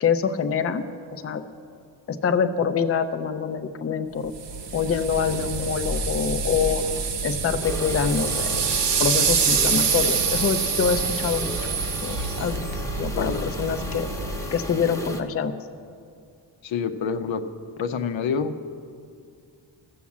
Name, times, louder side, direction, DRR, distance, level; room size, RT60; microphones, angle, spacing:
voice 1, 0.0-0.8 1.1-1.4 2.1-4.3 4.7-6.9 7.2-8.6 9.0-11.6 12.0-12.6 13.0-14.1 14.5-15.5, left 6 dB, 30° left, 8 dB, 0.5 m, -25 dB
sound 1, 4.3-14.6, right 5 dB, 65° right, 1.0 m, -26 dB
sound 2, 7.6-15.2, left 1 dB, 5° left, 0.9 m, -35 dB
voice 2, 13.1-13.5 16.6-17.5 17.8-18.6, left 6 dB, 80° left, 9 dB, 0.8 m, -27 dB
13.5 x 7.2 x 7.3 m, 2.3 s
wide cardioid pair, 120°, 46 cm